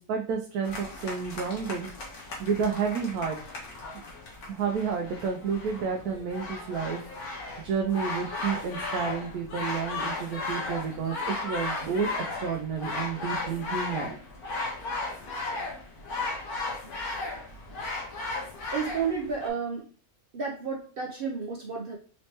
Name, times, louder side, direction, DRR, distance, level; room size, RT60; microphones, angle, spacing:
voice 1, 0.0-1.9 2.4-3.4 4.5-7.0 7.3-14.2, right 6 dB, 85° right, 2 dB, 1.1 m, -30 dB
sound 1, 0.6-19.5, left 3 dB, 85° left, 1.6 m, -35 dB
voice 2, 18.7-19.9 20.3-22.0, right 5 dB, 70° right, -1 dB, 0.5 m, -31 dB
4.3 x 3.2 x 2.8 m, 0.42 s
omnidirectional pair, 1.5 m